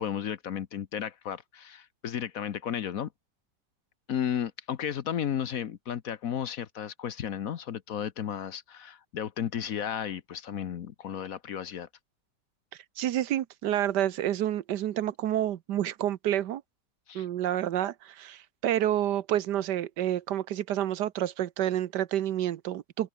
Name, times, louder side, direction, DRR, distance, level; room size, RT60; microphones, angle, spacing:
voice 1, 0.0-3.1 4.1-11.9 17.1-17.3, left 9 dB, 60° left, 1.2 m, -33 dB
voice 2, 13.0-16.6 17.1-23.1, right 12 dB, 75° right, 1.4 m, -29 dB
omnidirectional pair, 1.8 m